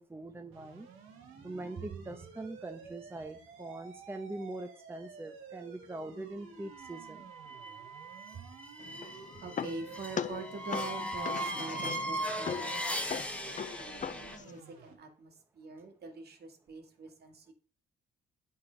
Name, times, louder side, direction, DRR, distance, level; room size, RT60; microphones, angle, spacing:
voice 1, 0.0-0.9 1.4-7.2, right 2 dB, 10° right, 0.8 m, -42 dB
sound 1, 0.5-14.9, right 5 dB, 90° right, 1.9 m, -52 dB
voice 2, 1.0-2.2 6.0-6.6 7.5-7.6 8.3-8.5 9.4-12.8 14.0-17.5, right 4 dB, 55° right, 2.1 m, -45 dB
sound 2, 6.7-14.4, equal, 5° left, 1.3 m, -39 dB
sound 3, 8.8-14.6, left 8 dB, 40° left, 0.5 m, -40 dB
8.5 x 4.5 x 5.3 m
cardioid pair, 90°, 20 cm